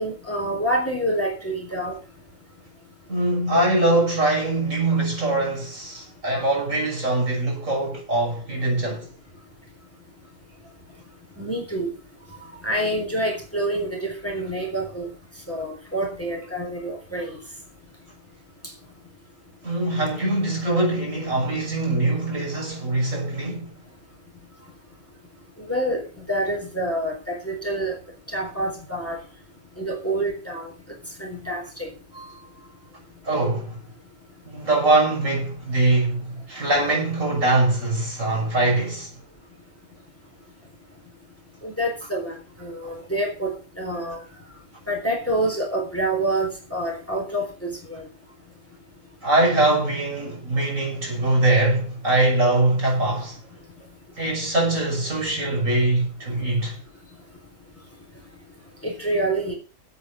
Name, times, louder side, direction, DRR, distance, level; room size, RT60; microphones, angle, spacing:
voice 1, 0.0-2.0 11.4-11.9 12.6-15.1 15.5-17.3 25.7-26.0 26.3-28.0 28.3-29.2 29.8-30.7 31.2-31.9 32.2-32.3 41.6-42.3 42.6-43.5 43.8-44.2 44.9-48.0 58.8-59.5, right 1 dB, 10° left, 3.7 m, -27 dB
voice 2, 3.1-9.1 19.6-23.7 33.2-33.8 34.4-39.1 42.8-42.9 49.2-53.4 54.2-56.8, right 2 dB, 60° right, 6.5 m, -22 dB
8.8 x 8.7 x 8.2 m
omnidirectional pair, 1.5 m